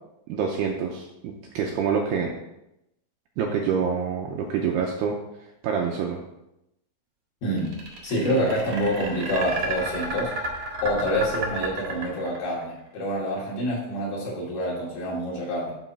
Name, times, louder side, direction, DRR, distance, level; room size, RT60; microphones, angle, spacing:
voice 1, 0.3-2.3 3.4-5.2 5.6-6.2, right 6 dB, 85° right, 1 dB, 2.4 m, -26 dB
voice 2, 7.4-7.8 8.0-10.3 10.8-15.7, equal, 60° left, -5 dB, 4.3 m, -27 dB
sound 1, 7.6-12.6, right 3 dB, 60° right, 1.4 m, -31 dB
9.9 x 4.1 x 5.9 m, 0.86 s
omnidirectional pair, 5.4 m